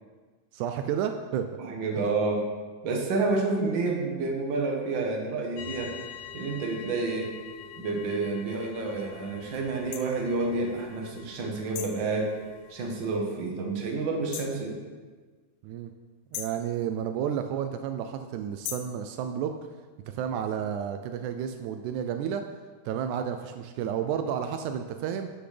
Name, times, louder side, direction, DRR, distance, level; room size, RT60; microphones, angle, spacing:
voice 1, 0.5-1.5 1.9-2.1 15.6-15.9 16.3-19.6 20.1-22.4 22.9-25.3, right 8 dB, 90° right, 7 dB, 1.7 m, -31 dB
voice 2, 1.6-2.4 2.8-6.1 6.3-7.3 7.8-12.4 12.7-14.8, right 3 dB, 70° right, 0 dB, 1.1 m, -29 dB
sound 1, 5.6-13.2, left 9 dB, 65° left, 2.0 m, -46 dB
sound 2, 9.9-10.1 11.7-12.0 14.3-14.6 16.3-16.6 18.6-19.0, left 9 dB, 85° left, 2.4 m, -37 dB
11.5 x 8.0 x 3.4 m, 1.4 s
omnidirectional pair, 4.0 m